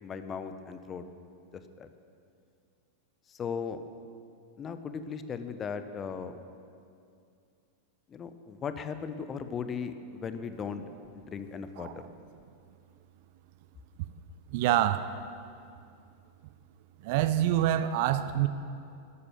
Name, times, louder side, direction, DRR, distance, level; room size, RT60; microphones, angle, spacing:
voice 1, 0.0-1.0 1.5-1.9 3.3-3.8 4.6-6.3 8.1-10.8 11.1-11.9, left 6 dB, 25° left, 10 dB, 1.0 m, -37 dB
voice 2, 14.5-15.0 17.0-18.5, right 12 dB, 50° right, 12 dB, 0.7 m, -26 dB
14.5 x 12.5 x 7.6 m, 2.4 s
figure-of-eight pair, 90°, 0 cm